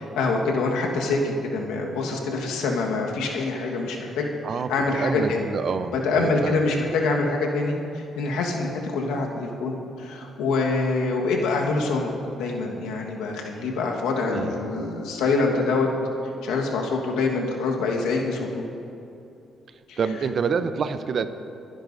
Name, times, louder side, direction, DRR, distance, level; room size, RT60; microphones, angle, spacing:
voice 1, 0.0-4.3 4.7-5.5 6.0-12.1 12.4-15.9 16.4-18.6 19.9-20.0, left 3 dB, 85° left, 0 dB, 1.4 m, -25 dB
voice 2, 4.4-6.6 6.9-7.0 14.2-14.5 20.0-21.3, right 6 dB, 55° right, 11 dB, 0.6 m, -27 dB
23.0 x 10.5 x 2.7 m, 2.7 s
supercardioid pair, 65°, 0 cm